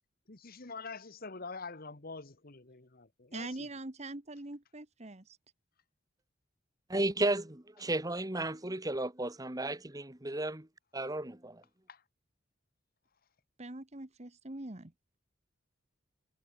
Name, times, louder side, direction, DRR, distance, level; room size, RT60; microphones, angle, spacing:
voice 1, 0.3-3.7 11.9-12.0, left 4 dB, 50° left, 1.6 m, -45 dB
voice 2, 3.3-5.4 13.6-14.9, right 2 dB, 35° right, 1.5 m, -43 dB
voice 3, 6.9-10.7 10.9-11.6, right 2 dB, 20° right, 1.7 m, -34 dB
head